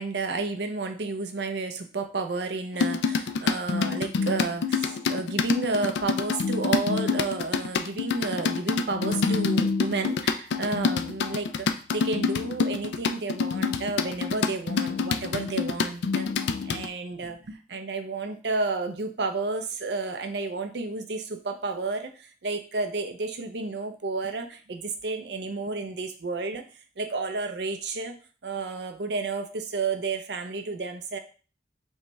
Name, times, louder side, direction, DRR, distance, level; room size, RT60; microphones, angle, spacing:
voice 1, 0.0-26.6 27.0-28.1 28.4-31.2, right 3 dB, 75° right, 5 dB, 0.6 m, -31 dB
sound 1, 2.8-16.9, left 5 dB, 80° left, 0.3 m, -27 dB
5.4 x 2.3 x 3.1 m, 0.37 s
head